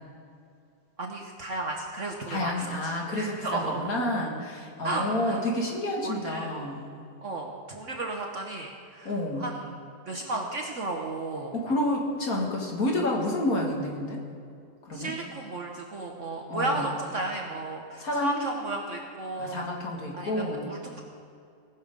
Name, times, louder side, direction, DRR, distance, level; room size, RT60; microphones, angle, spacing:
voice 1, 1.0-3.9 4.8-5.4 6.0-6.5 7.2-9.1 9.4-9.6 10.1-11.5 14.9-19.6 20.1-20.3 20.7-21.1, right 2 dB, 50° right, 1 dB, 1.1 m, -33 dB
voice 2, 2.3-6.9 9.0-9.5 11.5-14.2 14.8-15.1 16.5-16.9 18.0-18.4 19.4-20.7, left 1 dB, 50° left, -1 dB, 2.0 m, -29 dB
18.5 x 6.5 x 5.2 m, 2.4 s
omnidirectional pair, 2.0 m